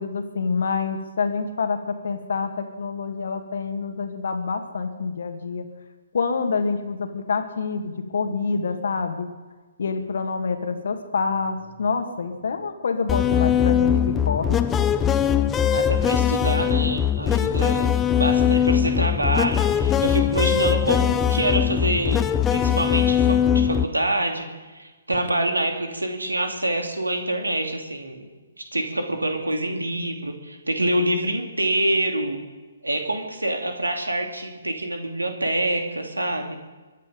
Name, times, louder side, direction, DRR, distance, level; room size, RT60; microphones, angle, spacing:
voice 1, 0.0-5.7 6.1-9.3 9.8-14.6, left 5 dB, 55° left, 6 dB, 2.1 m, -27 dB
sound 1, 13.1-23.8, left 9 dB, 15° left, 0.6 m, -21 dB
voice 2, 15.7-17.9 18.2-22.2 22.5-24.5 24.7-28.3 28.6-32.4 32.8-36.6, right 1 dB, 75° right, 3 dB, 2.9 m, -26 dB
23.0 x 11.0 x 5.4 m, 1.3 s
figure-of-eight pair, 130°, 0 cm